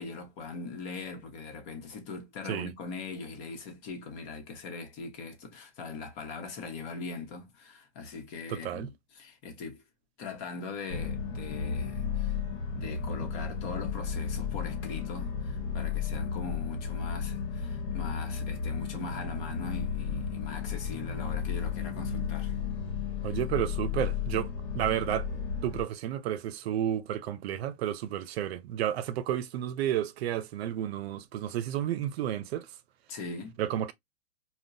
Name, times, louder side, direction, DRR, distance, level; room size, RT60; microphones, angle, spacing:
voice 1, 0.0-9.8 10.2-12.4 12.7-22.6 33.1-33.6, left 4 dB, 45° left, 1.2 m, -41 dB
voice 2, 8.5-8.9 23.2-25.3 25.6-32.7 33.6-33.9, right 11 dB, 70° right, 0.6 m, -31 dB
sound 1, 10.9-25.8, left 6 dB, 60° left, 1.3 m, -33 dB
3.6 x 2.3 x 2.6 m
hypercardioid pair, 135°, 33 cm